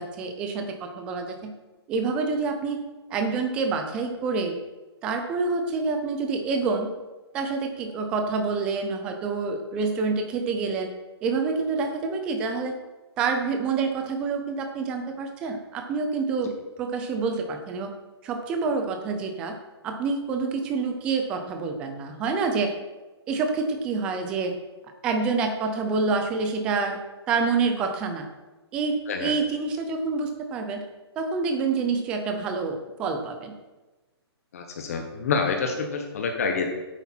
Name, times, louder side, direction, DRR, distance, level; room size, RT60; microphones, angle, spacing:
voice 1, 0.0-1.5 1.9-2.8 3.1-4.5 5.0-6.9 7.3-10.9 11.2-12.7 13.2-17.9 18.2-19.6 19.8-22.7 23.3-24.5 25.0-27.0 27.3-28.3 28.7-30.8 31.2-33.5, right 4 dB, 5° right, 5 dB, 0.4 m, -27 dB
voice 2, 34.5-36.7, left 5 dB, 35° left, 4 dB, 0.9 m, -27 dB
9.9 x 8.1 x 4.4 m, 1.2 s
hypercardioid pair, 175°, 14 cm